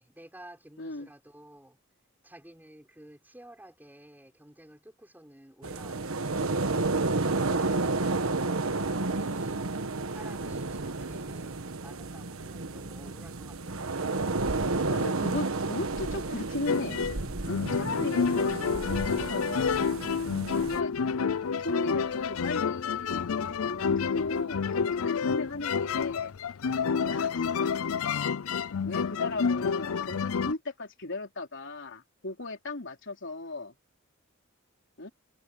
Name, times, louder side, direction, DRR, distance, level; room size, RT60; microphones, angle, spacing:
voice 1, 0.0-1.8 2.2-6.7 10.1-14.2, right 1 dB, 10° right, 5.8 m, -52 dB
voice 2, 0.8-1.1 14.9-17.0 17.4-20.2 20.5-20.9 21.6-26.3 27.0-27.7 28.9-33.7 35.0-35.1, left 2 dB, 60° left, 3.7 m, -37 dB
sound 1, 5.6-20.8, right 3 dB, 80° right, 1.3 m, -31 dB
sound 2, 16.7-30.5, left 6 dB, 90° left, 0.5 m, -29 dB
head